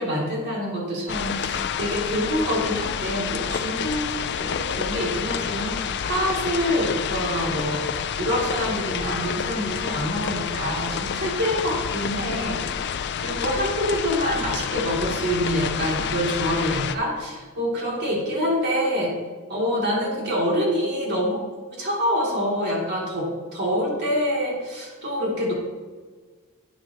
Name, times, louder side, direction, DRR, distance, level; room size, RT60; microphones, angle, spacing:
voice 1, 0.0-7.9 8.2-12.9 13.2-19.1 19.5-21.4 21.8-25.5, equal, 50° right, -4 dB, 3.0 m, -26 dB
sound 1, 1.1-17.0, left 7 dB, 50° left, 0.4 m, -29 dB
10.0 x 9.4 x 3.1 m, 1.4 s
head